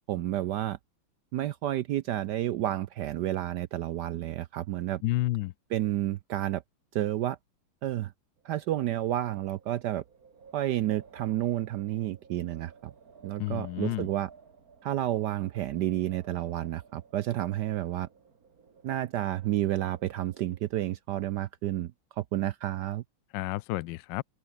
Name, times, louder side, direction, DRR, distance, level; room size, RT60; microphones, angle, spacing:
voice 1, 0.1-0.8 1.3-5.0 5.7-6.6 6.9-7.4 7.8-8.1 8.4-10.0 10.5-12.9 13.2-14.3 14.8-18.1 18.8-23.0, right 13 dB, 70° right, 1.0 m, -30 dB
voice 2, 5.0-5.5 13.4-14.1 23.3-24.2, left 17 dB, 75° left, 1.1 m, -30 dB
Wind, 8.4-21.0, right 5 dB, 45° right, 2.4 m, -56 dB
omnidirectional pair, 2.3 m